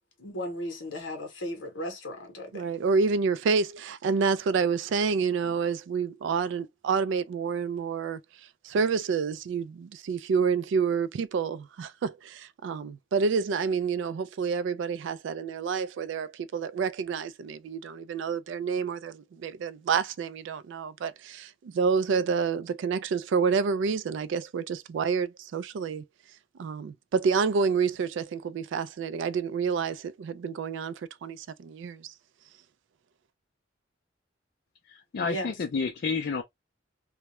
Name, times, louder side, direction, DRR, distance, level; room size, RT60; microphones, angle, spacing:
voice 1, 0.2-2.7 35.2-35.5, equal, 70° left, 0.8 m, -36 dB
voice 2, 2.5-8.2 8.6-26.0 26.6-30.9 31.2-32.1, right 5 dB, 65° right, 0.3 m, -28 dB
voice 3, 34.9-36.4, left 4 dB, 55° left, 0.4 m, -30 dB
2.2 x 2.0 x 2.8 m
head